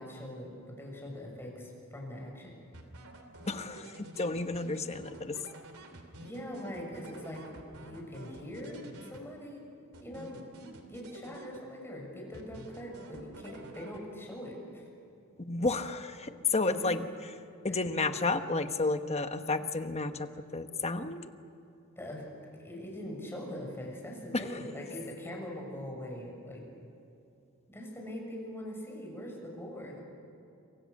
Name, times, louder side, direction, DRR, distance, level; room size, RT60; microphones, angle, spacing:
voice 1, 0.0-2.6 6.2-7.4 7.8-9.6 10.0-14.9 16.8-16.9 17.7-17.8 22.0-22.2 22.5-26.6 27.7-30.0, left 1 dB, 10° left, 0 dB, 6.7 m, -42 dB
sound 1, 2.7-9.6 9.9-12.0 12.3-14.4, right 2 dB, 80° right, 3.0 m, -50 dB
voice 2, 3.5-5.4 15.4-17.0 17.6-21.3 24.3-24.4, left 3 dB, 30° left, 8 dB, 1.2 m, -31 dB
27.0 x 25.5 x 6.6 m, 2.7 s
head